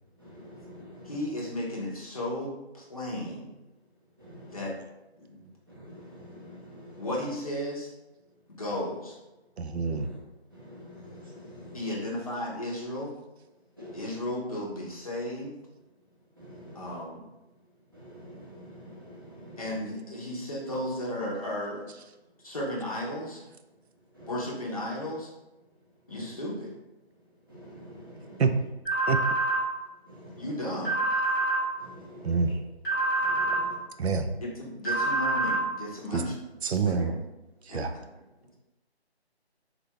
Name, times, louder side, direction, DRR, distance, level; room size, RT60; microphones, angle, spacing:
voice 1, 0.2-1.0 4.2-4.4 5.8-6.9 10.6-11.8 13.8-13.9 16.4-16.9 18.1-19.6 24.2-24.3 27.6-28.4 30.2-30.4 31.8-32.2 33.2-33.7, equal, 20° right, -8 dB, 0.6 m, -47 dB
voice 2, 1.1-3.5 4.5-4.7 5.2-5.5 7.0-7.9 8.5-9.2 11.7-13.1 13.9-15.5 16.7-17.2 19.6-21.9 22.4-23.4 24.3-25.3 26.1-26.7 30.4-31.0 34.4-36.3 36.7-37.2 37.7-38.0, left 1 dB, 35° left, -3 dB, 0.6 m, -34 dB
voice 3, 9.6-10.1 28.4-28.5 29.1-29.2 32.2-32.5 34.0-34.3 36.1-36.2 36.6-37.1 37.7-37.9, right 5 dB, 75° right, 7 dB, 0.5 m, -26 dB
sound 1, 28.8-29.6 30.8-31.6 32.8-33.6 34.8-35.6, right 2 dB, ahead, 0.8 m, -26 dB
3.9 x 2.3 x 2.8 m, 1.0 s
figure-of-eight pair, 160°, 33 cm